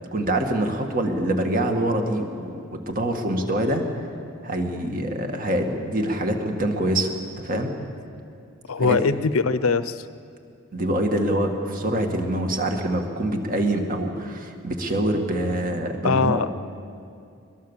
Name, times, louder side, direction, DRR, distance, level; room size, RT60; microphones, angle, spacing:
voice 1, 0.0-3.9 4.4-7.7 8.8-9.0 10.7-16.5, right 1 dB, 40° right, 4 dB, 2.2 m, -25 dB
voice 2, 8.7-10.0 16.0-16.5, left 4 dB, 80° left, 14 dB, 0.7 m, -22 dB
22.0 x 21.5 x 7.4 m, 2.5 s
head